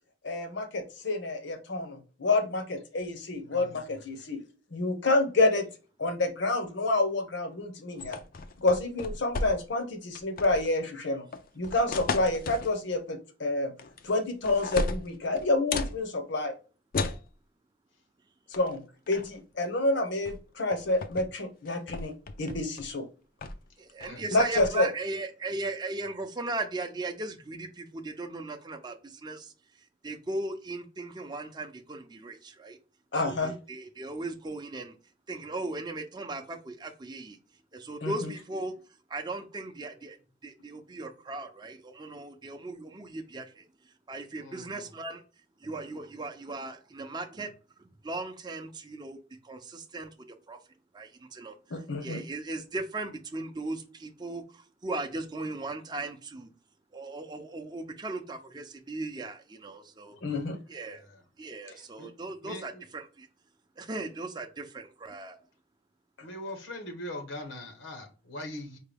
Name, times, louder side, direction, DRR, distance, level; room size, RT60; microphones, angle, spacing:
voice 1, 0.2-4.4 4.7-5.7 6.0-8.2 8.6-11.3 11.6-13.7 14.0-16.5 18.5-18.8 19.1-22.1 22.4-23.0 24.3-24.9 33.1-33.5 38.0-38.3 51.7-52.2 60.2-60.6, left 2 dB, 65° left, 0.9 m, -28 dB
voice 2, 3.4-4.3 24.0-24.2 33.2-33.3 44.4-44.9 60.1-60.4 60.9-61.2 61.7-62.1 62.4-62.8 66.2-68.8, left 1 dB, 90° left, 1.2 m, -42 dB
sound 1, 8.0-9.8 10.1-10.7 11.3-12.7 13.8-14.2 14.4-16.0 16.9-17.3 18.5-18.7 19.1-19.4 20.3-20.4 20.7-21.3 21.6-22.9 23.4-23.7 24.0-24.7, left 3 dB, 50° left, 0.4 m, -35 dB
voice 3, 23.8-29.5 30.0-32.8 33.2-34.9 35.3-37.4 37.7-38.7 39.1-40.2 40.4-43.6 44.1-45.2 45.6-47.5 47.8-50.6 50.9-51.6 52.0-56.5 56.9-60.2 60.7-61.0 61.4-63.3 63.8-65.4, right 2 dB, 25° right, 0.5 m, -37 dB
4.5 x 2.3 x 3.3 m
head